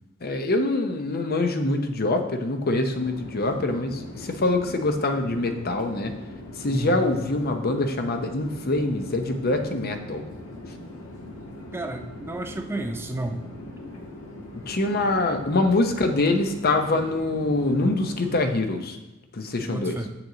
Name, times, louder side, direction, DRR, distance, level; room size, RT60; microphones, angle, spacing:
voice 1, 0.2-6.1 6.6-10.2 14.7-19.0 19.3-20.0, left 2 dB, 45° left, 6 dB, 0.7 m, -24 dB
Chatter / Fixed-wing aircraft airplane, 2.9-18.4, left 1 dB, 85° left, 1.8 m, -40 dB
voice 2, 6.7-7.0 11.7-13.5 19.6-20.1, right 1 dB, 10° right, 4 dB, 0.4 m, -31 dB
7.4 x 5.9 x 3.9 m, 1.1 s
head